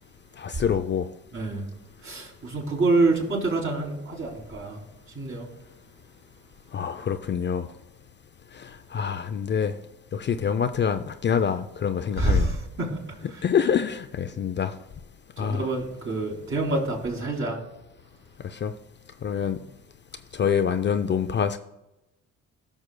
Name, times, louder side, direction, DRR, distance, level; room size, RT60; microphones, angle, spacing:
voice 1, 0.4-1.1 6.7-7.7 8.6-9.7 10.1-12.5 13.4-14.7 15.4-15.6 18.4-18.7 19.2-19.6 20.3-21.6, left 7 dB, 40° left, 9 dB, 0.4 m, -26 dB
voice 2, 1.3-1.7 2.0-4.8 5.1-5.5 12.1-13.5 15.4-17.6, right 2 dB, 45° right, -1 dB, 3.0 m, -27 dB
17.5 x 6.1 x 2.2 m, 0.94 s
cardioid pair, 90°, 30 cm